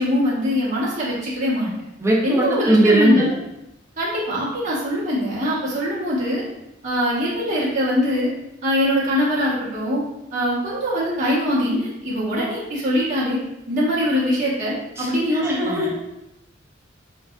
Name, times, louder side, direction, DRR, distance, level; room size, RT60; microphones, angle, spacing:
voice 1, 0.0-1.7 2.2-3.3 4.0-6.4 6.8-8.3 8.6-10.0 10.3-13.4 13.7-15.9, left 1 dB, 40° right, -8 dB, 1.0 m, -22 dB
voice 2, 2.0-3.3 15.0-15.9, right 1 dB, 15° right, -3 dB, 0.4 m, -19 dB
3.3 x 2.4 x 2.2 m, 0.90 s
head